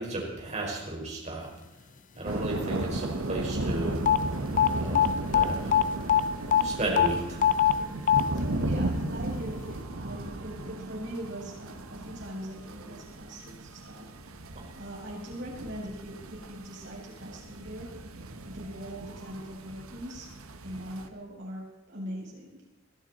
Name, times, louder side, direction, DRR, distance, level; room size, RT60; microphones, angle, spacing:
voice 1, 0.0-1.5 2.2-4.0 4.7-5.7 6.6-7.4 14.5-14.6, right 2 dB, 35° right, -1 dB, 5.0 m, -34 dB
sound 1, 2.2-21.1, right 2 dB, 85° right, 1.2 m, -36 dB
sound 2, 4.1-4.2 4.6-4.7 5.0-5.5 5.7-5.8 6.1-6.2 6.5-6.6 7.0-7.1 7.4-7.7 8.1-8.2, left 10 dB, 40° left, 0.6 m, -20 dB
voice 2, 7.7-14.1 14.7-17.9 18.4-20.3 20.6-22.5, equal, 60° right, -3 dB, 7.1 m, -41 dB
22.0 x 14.0 x 4.3 m, 1.0 s
head